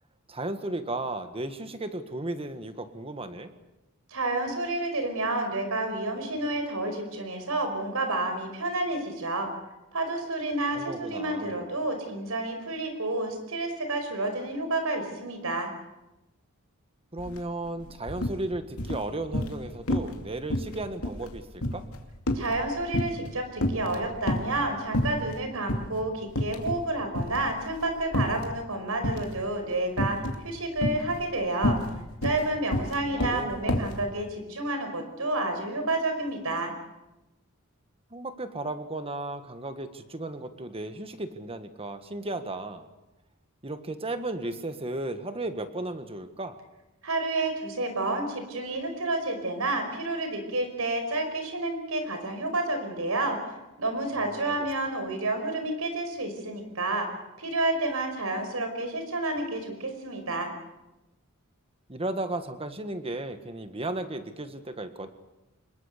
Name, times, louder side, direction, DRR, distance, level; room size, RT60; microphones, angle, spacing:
voice 1, 0.3-3.5 10.7-11.7 17.1-21.8 33.1-33.5 38.1-42.9 43.6-46.6 54.4-54.6 61.9-65.1, right 2 dB, 25° right, 9 dB, 1.6 m, -35 dB
voice 2, 4.1-9.5 9.9-15.7 22.3-31.8 32.2-36.7 47.0-57.1 57.4-60.5, right 2 dB, 85° right, 6 dB, 5.2 m, -30 dB
sound 1, 17.2-17.4 17.7-18.4 18.8-19.6 19.9-20.2 20.5-23.3 23.6-24.6 24.9-25.4 25.7-25.9 26.3-26.9 27.1-28.5 29.0-29.4 30.0-30.4 30.8-34.0, left 1 dB, 85° left, 2.6 m, -29 dB
25.0 x 21.5 x 6.7 m, 0.98 s
head